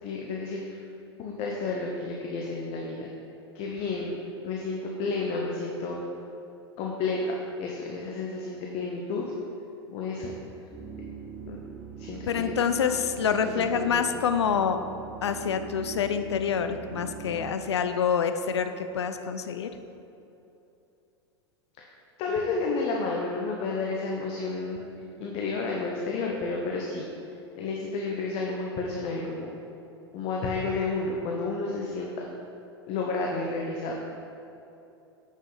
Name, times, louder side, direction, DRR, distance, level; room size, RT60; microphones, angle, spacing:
voice 1, 0.0-0.8 1.2-3.1 3.5-4.2 4.4-6.0 6.8-9.3 9.9-10.3 11.5-11.6 12.0-12.6 13.5-14.0 21.8-21.9 22.2-24.8 25.2-27.1 27.6-29.5 30.1-32.3 32.9-34.0, left 3 dB, 45° left, -1 dB, 1.0 m, -31 dB
sound 1, 10.7-17.6, right 6 dB, 10° right, 1.0 m, -42 dB
voice 2, 12.3-14.8 15.2-19.7, left 7 dB, 75° left, 9 dB, 0.6 m, -27 dB
9.1 x 6.4 x 4.1 m, 2.8 s
figure-of-eight pair, 90°, 14 cm